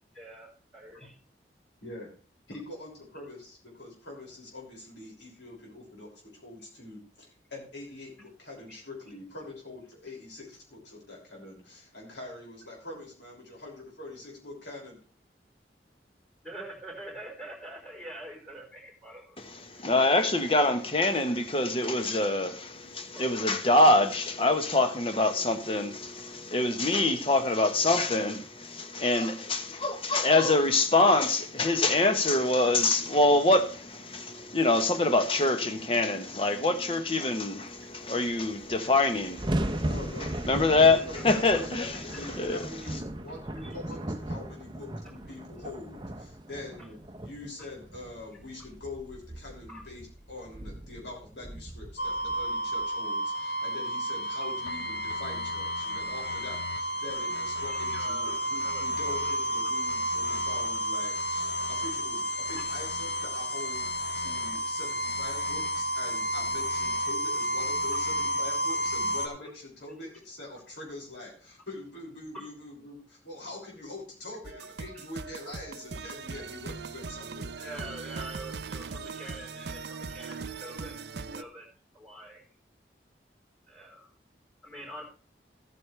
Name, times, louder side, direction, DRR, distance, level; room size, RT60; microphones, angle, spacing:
voice 1, 0.1-0.5 0.7-1.1 16.4-19.4 19.7-19.9 23.1-23.6 37.9-38.0 40.9-41.6 43.6-43.8 49.7-49.8 57.7-58.8 59.1-59.4 62.6-62.7 72.3-72.5 77.6-81.0 81.3-81.7 81.9-82.4 83.7-84.1 84.6-85.0, right 1 dB, ahead, 4.2 m, -45 dB
voice 2, 2.5-15.0 39.8-40.3 40.7-77.5, left 2 dB, 90° left, 6.1 m, -44 dB
voice 3, 19.7-39.4 40.4-41.0 41.2-41.9 42.4-42.6, left 2 dB, 30° left, 1.1 m, -25 dB
sound 1, 38.2-38.3 38.5-52.9, right 1 dB, 25° right, 0.7 m, -37 dB
sound 2, 52.0-69.3, right 1 dB, 75° left, 1.0 m, -31 dB
sound 3, 74.4-81.4, right 4 dB, 70° right, 0.7 m, -40 dB
14.0 x 9.4 x 3.4 m
head